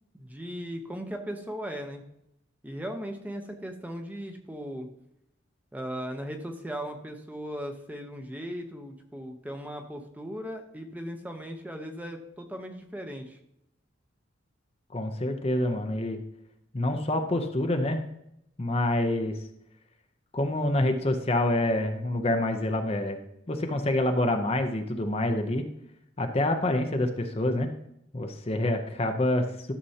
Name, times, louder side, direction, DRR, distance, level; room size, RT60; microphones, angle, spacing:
voice 1, 0.1-2.0 2.6-4.9 5.7-13.4, equal, 10° right, 4 dB, 0.8 m, -37 dB
voice 2, 14.9-16.2 16.7-18.0 18.6-19.4 20.3-23.2 23.5-25.7 26.2-27.7 28.1-29.7, left 1 dB, 30° left, 6 dB, 0.6 m, -27 dB
13.0 x 6.8 x 2.8 m, 0.78 s
head